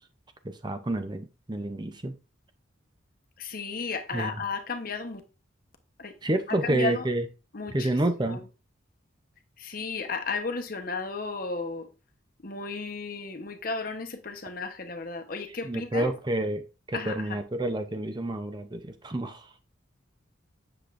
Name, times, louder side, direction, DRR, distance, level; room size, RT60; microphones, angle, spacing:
voice 1, 0.4-2.1 4.1-4.4 6.2-7.3 7.7-8.4 15.5-19.5, right 1 dB, 20° right, 0.6 m, -29 dB
voice 2, 3.4-5.2 6.0-6.1 6.6-7.0 7.5-7.9 8.3-8.4 9.6-11.9 12.4-16.1 16.9-17.4, left 4 dB, 45° left, 0.9 m, -34 dB
8.1 x 6.8 x 2.5 m
head